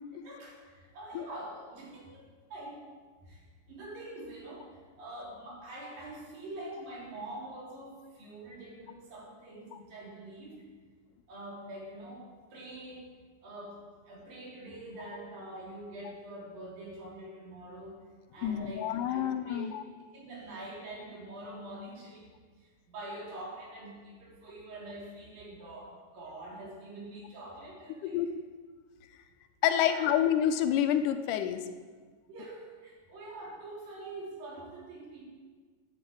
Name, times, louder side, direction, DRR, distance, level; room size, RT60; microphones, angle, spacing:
voice 1, 0.2-2.8 3.2-3.4 3.7-10.6 11.3-12.2 12.5-13.1 13.4-13.8 14.1-17.9 18.3-22.3 22.6-28.2 29.7-30.1 32.3-35.2, right 1 dB, 85° right, -4 dB, 5.0 m, -45 dB
voice 2, 18.4-19.8 28.1-28.3 29.6-31.7, left 10 dB, 80° left, 9 dB, 2.1 m, -28 dB
10.5 x 7.9 x 8.5 m, 1.5 s
omnidirectional pair, 3.9 m